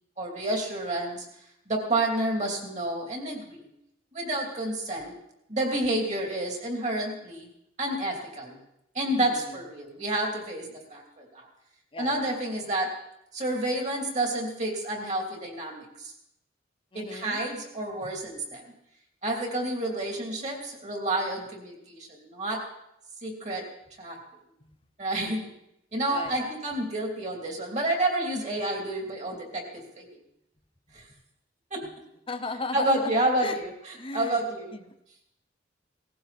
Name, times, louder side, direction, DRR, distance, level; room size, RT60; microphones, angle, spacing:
voice 1, 0.2-1.2 1.7-3.7 4.1-5.1 5.5-7.5 7.8-8.6 8.9-11.5 12.0-12.9 13.3-15.8 16.9-18.6 19.2-22.7 23.2-23.7 24.0-24.2 25.0-25.5 25.9-30.0 30.9-31.0 31.7-31.9 32.7-34.7, right 1 dB, 40° right, 2 dB, 3.1 m, -29 dB
voice 2, 9.1-9.6 11.9-12.3 16.9-17.4 24.6-24.8 25.2-25.3 26.1-26.6 32.3-33.6 33.9-34.4 34.7-34.9, left 3 dB, 30° left, 7 dB, 0.9 m, -37 dB
18.0 x 15.0 x 4.3 m, 0.81 s
head